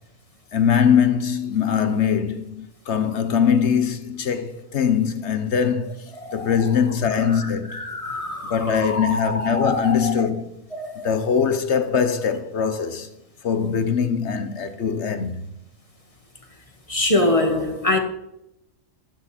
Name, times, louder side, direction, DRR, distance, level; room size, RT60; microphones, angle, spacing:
voice 1, 0.5-7.8 8.4-10.5 11.0-13.1 13.4-15.4, left 7 dB, 60° left, 1.2 m, -22 dB
voice 2, 6.2-6.6 7.2-10.1 10.7-11.1 16.9-18.0, left 2 dB, 25° left, 1.7 m, -25 dB
12.0 x 11.5 x 4.3 m
omnidirectional pair, 1.4 m